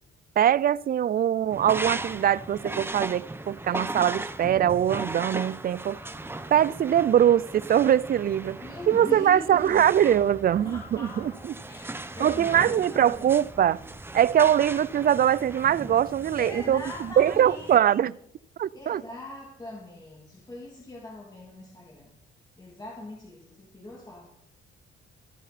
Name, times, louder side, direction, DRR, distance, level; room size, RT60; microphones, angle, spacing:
voice 1, 0.4-6.0 6.5-8.6 8.9-11.5 12.2-13.8 14.1-16.8 17.2-18.1 18.6-19.0, right 10 dB, 50° right, 0.5 m, -22 dB
sound 1, 1.5-17.8, right 2 dB, 10° right, 0.9 m, -38 dB
voice 2, 8.6-9.8 10.5-13.3 16.4-18.2 18.7-22.2 22.6-24.3, left 1 dB, 20° left, 2.8 m, -41 dB
23.0 x 8.4 x 4.2 m
cardioid pair, 90°, 20 cm